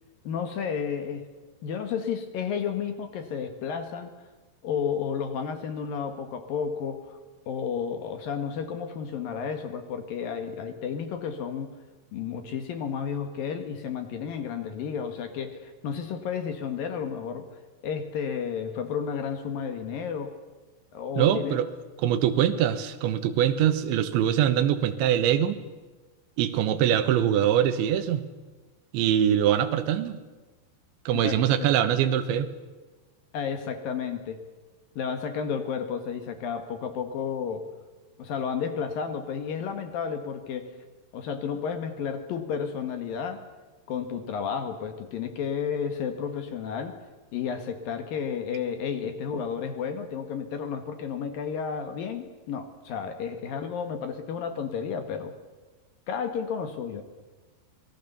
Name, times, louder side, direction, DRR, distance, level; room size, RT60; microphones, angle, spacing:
voice 1, 0.2-1.3 1.6-4.1 4.6-7.2 7.5-11.7 12.1-17.5 17.8-20.4 20.9-21.6 31.1-31.7 33.3-34.4 35.0-37.6 38.2-40.7 41.1-43.4 43.9-46.9 47.3-55.3 56.1-57.0, left 7 dB, 60° left, 7 dB, 2.7 m, -32 dB
voice 2, 21.2-21.7 22.0-25.6 26.4-28.2 28.9-30.2 31.1-32.5 49.3-49.4, right 10 dB, 90° right, 10 dB, 3.5 m, -23 dB
26.5 x 20.5 x 6.9 m, 1.2 s
omnidirectional pair, 5.2 m